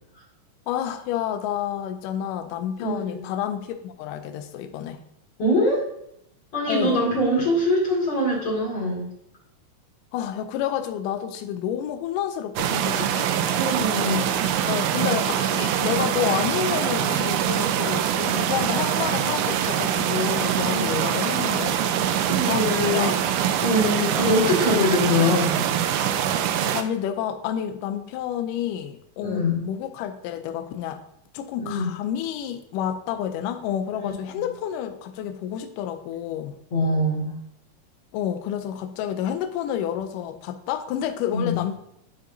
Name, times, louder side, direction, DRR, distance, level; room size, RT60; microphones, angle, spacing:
voice 1, 0.7-5.0 6.7-7.1 10.1-13.3 14.7-21.8 22.5-23.2 26.7-31.0 31.3-36.6 38.1-41.8, left 10 dB, 80° left, 7 dB, 1.9 m, -29 dB
voice 2, 2.8-3.3 5.4-5.8 6.5-9.1 13.5-14.7 15.0-15.1 20.6-20.8 22.3-23.2 23.6-25.7 29.2-29.6 31.6-31.9 34.0-34.5 36.7-37.3 41.3-41.6, left 1 dB, 40° left, -5 dB, 2.7 m, -23 dB
sound 1, 12.6-26.8, right 9 dB, 90° right, 1.9 m, -24 dB
11.5 x 4.0 x 2.7 m, 0.77 s
omnidirectional pair, 4.4 m